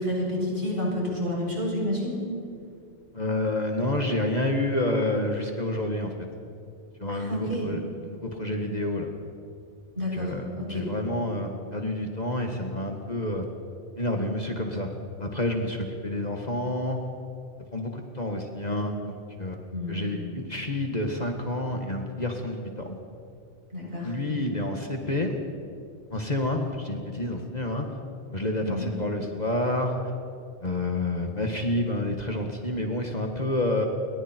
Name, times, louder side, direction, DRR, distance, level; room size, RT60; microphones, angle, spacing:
voice 1, 0.0-2.2 7.1-7.7 10.0-10.9 19.7-20.0 23.7-24.1 28.7-28.8, left 1 dB, 50° right, -4 dB, 8.2 m, -29 dB
voice 2, 3.1-6.3 7.0-9.1 10.1-13.5 14.0-14.9 15.2-17.0 17.7-23.0 24.0-25.4 26.1-27.9 28.3-30.0 30.6-33.9, left 1 dB, 35° left, 3 dB, 1.8 m, -29 dB
29.5 x 23.0 x 4.5 m, 2.5 s
omnidirectional pair, 1.2 m